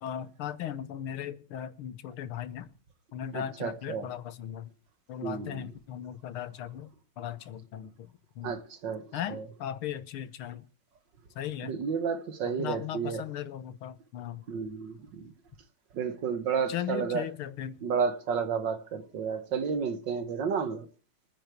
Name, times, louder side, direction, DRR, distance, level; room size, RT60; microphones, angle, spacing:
voice 1, 0.0-2.7 3.1-4.7 5.1-8.1 8.4-8.5 9.1-10.6 11.4-11.8 12.6-14.4 16.7-17.8, left 10 dB, 80° left, 1.9 m, -37 dB
voice 2, 3.3-4.1 5.2-5.6 8.4-9.0 9.3-9.4 11.6-13.2 14.5-15.3 15.9-17.2 17.8-20.9, right 6 dB, 60° right, 1.9 m, -31 dB
24.0 x 10.0 x 4.6 m
omnidirectional pair, 2.3 m